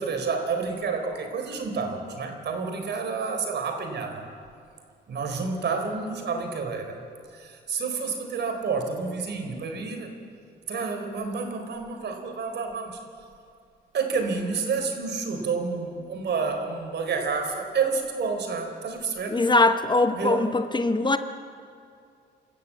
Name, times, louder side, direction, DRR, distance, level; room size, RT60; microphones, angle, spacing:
voice 1, 0.0-4.3 5.1-7.0 7.3-10.1 10.7-13.0 13.9-19.4 20.1-20.4, right 5 dB, 60° right, 5 dB, 3.9 m, -29 dB
voice 2, 19.3-21.2, left 2 dB, 25° left, 9 dB, 0.9 m, -21 dB
27.5 x 13.5 x 8.6 m, 2.3 s
cardioid pair, 90°, 20 cm